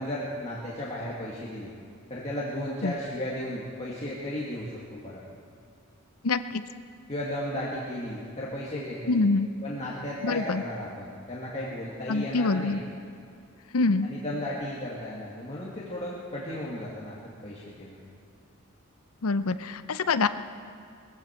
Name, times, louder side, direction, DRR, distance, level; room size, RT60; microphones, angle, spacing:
voice 1, 0.0-1.7 2.1-5.2 7.1-9.2 9.6-12.8 14.0-18.0, left 1 dB, 30° left, -6 dB, 1.9 m, -35 dB
voice 2, 6.2-6.6 9.1-9.5 10.2-10.6 12.1-12.8 13.7-14.1 19.2-20.3, left 3 dB, 80° left, 12 dB, 0.6 m, -25 dB
21.0 x 15.0 x 4.4 m, 2.4 s
head